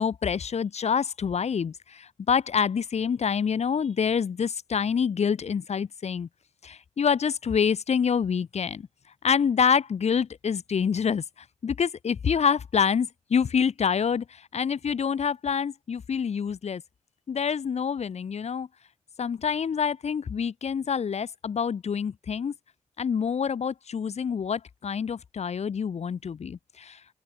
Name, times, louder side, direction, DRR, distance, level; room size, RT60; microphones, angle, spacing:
voice 1, 0.0-6.3 6.6-8.9 9.2-11.2 11.6-14.2 14.5-16.8 17.3-18.7 19.2-22.5 23.0-27.0, left 6 dB, 60° left, 1.3 m, -26 dB
open air
cardioid pair, 70°, 12 cm